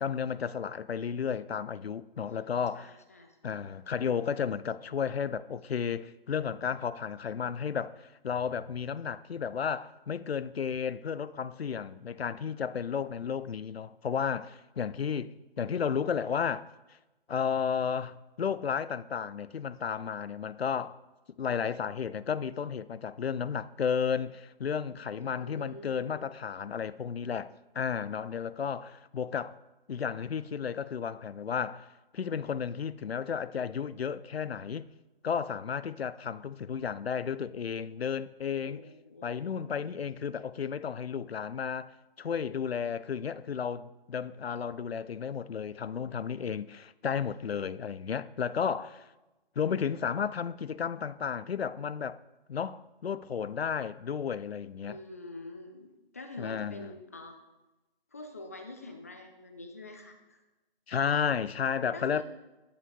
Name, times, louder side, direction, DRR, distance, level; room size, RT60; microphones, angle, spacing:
voice 1, 0.0-3.0 3.4-16.6 17.3-21.0 21.4-29.6 29.9-31.9 32.1-34.9 35.2-38.8 39.2-49.1 49.6-52.2 52.5-55.0 56.4-56.9 60.9-62.2, left 7 dB, 85° left, 0.5 m, -33 dB
voice 2, 2.2-3.5 25.2-26.3 38.4-39.4 54.8-57.4 58.1-60.4 61.9-62.2, left 2 dB, 15° left, 0.4 m, -46 dB
9.7 x 8.6 x 3.7 m
figure-of-eight pair, 145°, 30 cm